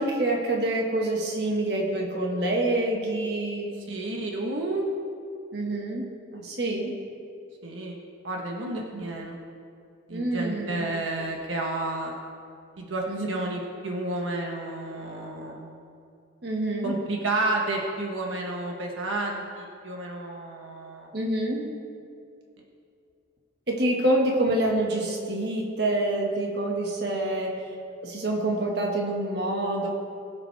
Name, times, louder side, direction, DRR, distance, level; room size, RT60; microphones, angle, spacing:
voice 1, 0.0-3.7 5.5-6.9 8.9-9.0 10.1-10.8 13.1-13.3 16.4-16.9 21.1-21.7 23.7-27.6 28.0-29.9, right 1 dB, 55° right, -1 dB, 1.7 m, -27 dB
voice 2, 3.8-4.9 7.6-8.0 8.2-9.4 10.1-12.1 12.8-15.7 16.8-21.1, right 2 dB, 85° right, 0 dB, 1.3 m, -31 dB
21.0 x 7.5 x 3.5 m, 2.4 s
head